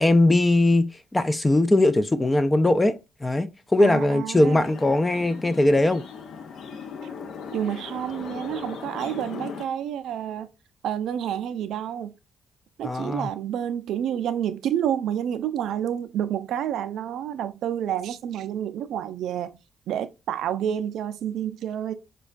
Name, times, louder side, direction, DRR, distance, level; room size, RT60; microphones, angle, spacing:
voice 1, 0.0-2.9 3.2-6.0 12.8-13.3, left 2 dB, 15° left, 0.3 m, -20 dB
voice 2, 3.8-4.7 7.5-10.5 10.8-12.1 12.8-19.6 19.9-21.9, right 10 dB, 80° right, 0.3 m, -29 dB
sound 1, 4.6-9.6, left 6 dB, 70° left, 0.5 m, -38 dB
5.0 x 2.2 x 2.3 m
cardioid pair, 90°, 0 cm